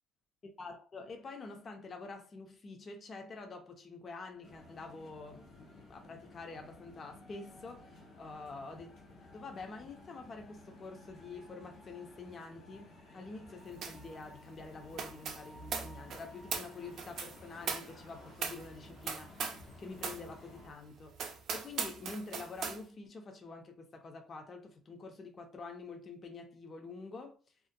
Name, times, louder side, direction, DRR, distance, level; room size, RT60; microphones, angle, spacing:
voice 1, 0.6-9.0 9.3-19.4 19.8-21.2 21.5-27.3, left 3 dB, 35° left, 0.4 m, -47 dB
sound 1, 4.4-20.7, left 2 dB, 90° left, 0.7 m, -55 dB
sound 2, 13.8-14.1 14.3-19.7 20.0-20.3 20.7-20.8 21.2-22.8, right 5 dB, 60° right, 0.4 m, -40 dB
2.4 x 2.1 x 2.5 m
cardioid pair, 125°, 0 cm